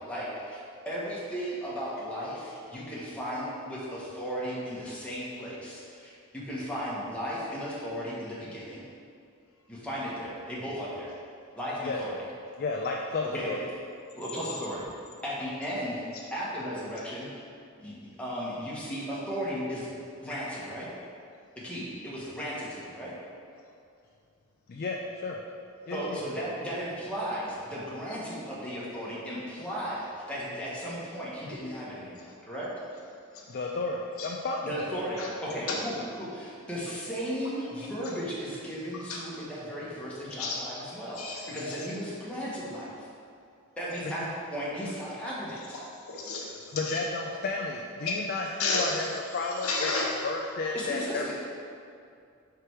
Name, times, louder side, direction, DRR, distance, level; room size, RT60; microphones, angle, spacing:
voice 1, 0.0-8.8 9.7-11.1 11.6-12.2 13.3-13.5 14.2-14.9 15.2-16.0 16.3-17.3 17.8-20.9 21.6-23.1 25.9-32.7 34.6-42.9 43.8-45.8 50.7-51.3, equal, 5° left, -8 dB, 1.2 m, -35 dB
voice 2, 12.6-13.6 24.7-25.4 25.9-26.2 33.5-34.9 46.7-49.9 50.2-51.3, left 3 dB, 45° left, 0 dB, 0.4 m, -32 dB
voice 3, 41.1-41.8 46.1-47.0 48.1-48.2 48.6-49.0 49.6-50.1, left 3 dB, 75° left, -2 dB, 1.0 m, -31 dB
5.0 x 4.5 x 4.6 m, 2.4 s
head